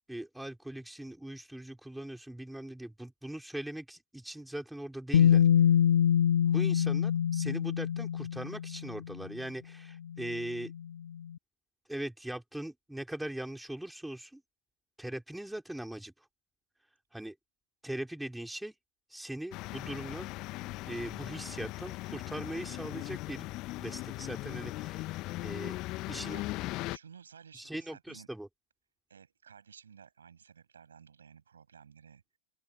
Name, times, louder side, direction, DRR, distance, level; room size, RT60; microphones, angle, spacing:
voice 1, 0.1-5.4 6.5-10.7 11.9-14.4 15.0-16.1 17.1-17.3 17.8-18.7 19.1-20.3 20.9-23.5 23.8-25.1 25.4-25.8 26.1-26.4 27.5-28.5, right 1 dB, 5° right, 5.4 m, -40 dB
Bass guitar, 5.1-9.1 10.2-10.3, left 9 dB, 65° left, 0.5 m, -25 dB
sound 1, 19.5-27.0, left 20 dB, 40° left, 1.6 m, -39 dB
voice 2, 26.7-28.3 29.1-32.4, right 7 dB, 70° right, 8.0 m, -55 dB
open air
figure-of-eight pair, 90°, 0 cm